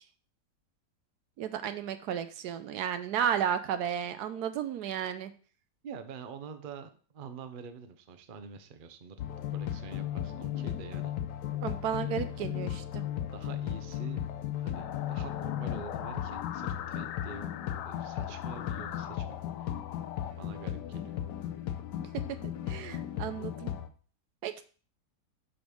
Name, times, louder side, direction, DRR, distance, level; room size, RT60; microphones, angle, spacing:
voice 1, 1.4-5.3 11.6-13.0 22.4-23.7 24.4-24.7, right 9 dB, 75° right, 10 dB, 1.1 m, -33 dB
voice 2, 5.8-9.2 9.5-11.1 12.0-12.6 13.3-14.2 14.6-19.8 20.4-21.2, right 6 dB, 45° right, 9 dB, 0.7 m, -46 dB
sound 1, 9.2-23.9, left 11 dB, 90° left, 1.3 m, -36 dB
sound 2, 14.7-20.3, left 10 dB, 70° left, 0.8 m, -42 dB
5.2 x 5.1 x 6.3 m, 0.40 s
omnidirectional pair, 1.8 m